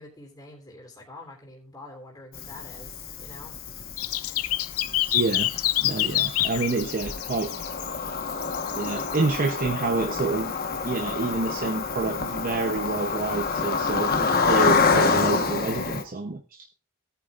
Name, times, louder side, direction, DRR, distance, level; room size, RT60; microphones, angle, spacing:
voice 1, 0.0-3.6, left 2 dB, 20° left, 3.3 m, -46 dB
Cricket, 2.3-16.0, left 4 dB, 45° left, 1.3 m, -28 dB
sound 1, 4.0-7.9 8.4-9.2, left 14 dB, 85° left, 0.6 m, -27 dB
voice 2, 5.1-7.6 8.7-10.5 10.8-16.6, right 3 dB, 40° right, 0.8 m, -28 dB
18.0 x 9.3 x 2.5 m
head